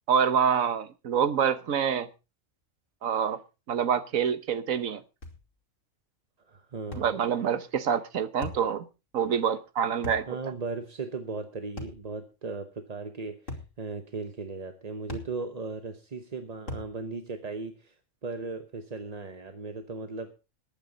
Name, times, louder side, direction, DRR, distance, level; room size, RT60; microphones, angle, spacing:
voice 1, 0.1-2.1 3.0-3.4 3.7-5.0 7.0-8.9 9.1-10.4, right 7 dB, 90° right, 1.5 m, -26 dB
sound 1, 5.2-5.4 6.9-7.2 8.4-8.7 10.0-10.3 11.8-12.0 13.5-13.7 15.1-15.4 16.7-16.9, left 2 dB, 70° left, 3.2 m, -38 dB
voice 2, 6.5-7.1 10.3-17.9 18.2-20.4, right 3 dB, 35° right, 0.9 m, -37 dB
20.5 x 8.9 x 3.9 m
omnidirectional pair, 1.4 m